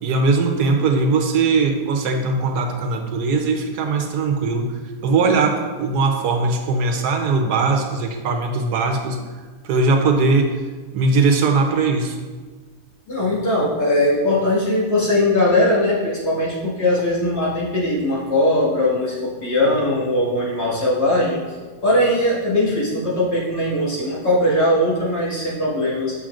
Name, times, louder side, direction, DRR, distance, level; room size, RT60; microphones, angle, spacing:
voice 1, 0.0-4.7 5.0-9.2 9.6-10.5 10.9-12.2, right 3 dB, 80° right, 3 dB, 1.3 m, -20 dB
voice 2, 13.1-21.4 21.8-26.1, left 1 dB, 70° left, -8 dB, 2.5 m, -20 dB
7.3 x 6.5 x 2.5 m, 1.4 s
omnidirectional pair, 1.7 m